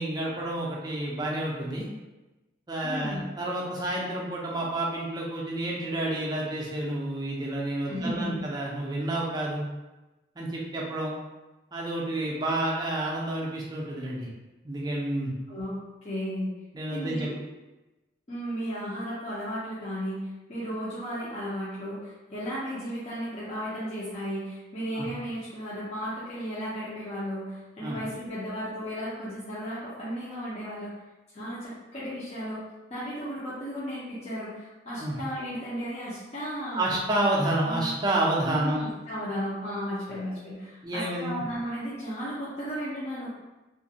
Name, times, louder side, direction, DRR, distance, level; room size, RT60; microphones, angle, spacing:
voice 1, 0.0-1.9 2.7-9.6 10.4-11.1 11.7-14.3 14.6-15.3 16.7-17.3 24.9-25.1 27.8-28.0 35.0-35.2 36.7-38.8 40.8-41.4, right 1 dB, 20° right, -4 dB, 0.4 m, -29 dB
voice 2, 2.8-3.2 7.9-8.4 15.5-15.8 16.0-16.5 16.9-17.4 18.3-30.9 31.3-32.6 32.9-36.9 37.6-37.9 38.5-43.3, equal, 35° left, -9 dB, 0.5 m, -34 dB
2.5 x 2.2 x 2.7 m, 1.1 s
head